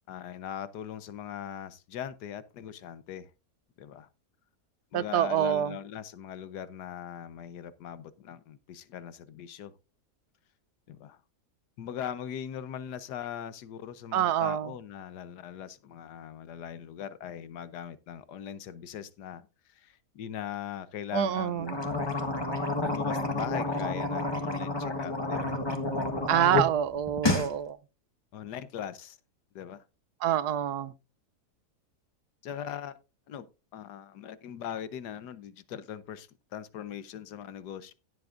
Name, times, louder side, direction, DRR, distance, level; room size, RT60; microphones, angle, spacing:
voice 1, 0.1-3.3 3.8-4.1 4.9-9.7 10.9-11.2 11.8-21.8 22.8-25.6 28.3-29.2 29.5-29.8 32.4-33.0 33.3-33.5 33.7-37.9, left 9 dB, 80° left, 1.4 m, -40 dB
voice 2, 4.9-5.7 14.1-14.7 21.1-21.8 26.3-27.8 30.2-30.9, right 10 dB, 75° right, 1.2 m, -26 dB
sound 1, 21.6-26.7 27.0-27.5, left 2 dB, 15° left, 1.2 m, -30 dB
17.5 x 7.9 x 2.5 m
omnidirectional pair, 1.7 m